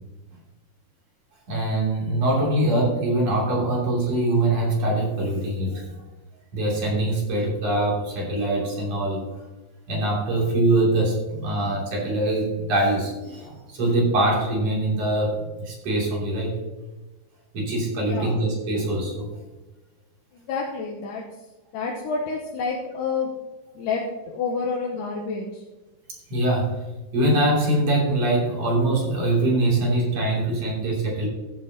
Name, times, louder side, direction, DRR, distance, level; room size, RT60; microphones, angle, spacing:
voice 1, 1.5-6.0 6.5-9.2 9.9-16.6 17.5-19.3 26.3-26.8 27.1-31.3, right 1 dB, 45° right, -3 dB, 3.8 m, -23 dB
voice 2, 18.1-18.4 20.3-21.2 21.7-23.3 23.8-25.6, left 4 dB, 70° left, -1 dB, 2.3 m, -29 dB
14.0 x 8.4 x 2.9 m, 1.1 s
omnidirectional pair, 4.5 m